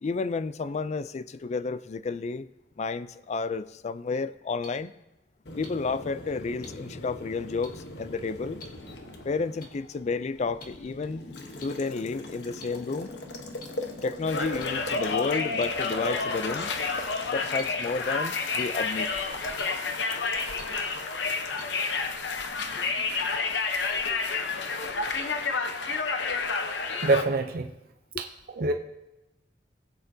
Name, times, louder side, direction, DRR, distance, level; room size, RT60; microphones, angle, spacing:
voice 1, 0.0-2.5 2.8-4.9 5.6-8.6 9.2-11.3 11.6-13.1 14.0-16.7 17.3-19.1, left 4 dB, 40° left, 0.4 m, -31 dB
sound 1, 4.6-4.7 5.6-5.7 6.6-6.7 7.6-7.7 8.6-8.7 9.6-9.7 10.6-10.7 11.6-11.7 12.6-12.7 13.6-13.7 14.6-14.7 15.6-15.7 16.6-16.7 17.6-17.7 18.6-18.7 19.6-19.7 20.6-20.7 21.6-21.7 22.6-22.7, left 2 dB, 55° left, 1.6 m, -43 dB
Boiling, 5.5-23.4, left 1 dB, 70° left, 1.1 m, -41 dB
Conversation, 14.3-27.2, left 4 dB, 90° left, 0.8 m, -30 dB
voice 2, 27.0-27.7 28.2-28.3 28.6-28.7, right 2 dB, 55° right, 0.5 m, -24 dB
19.5 x 8.1 x 2.7 m
head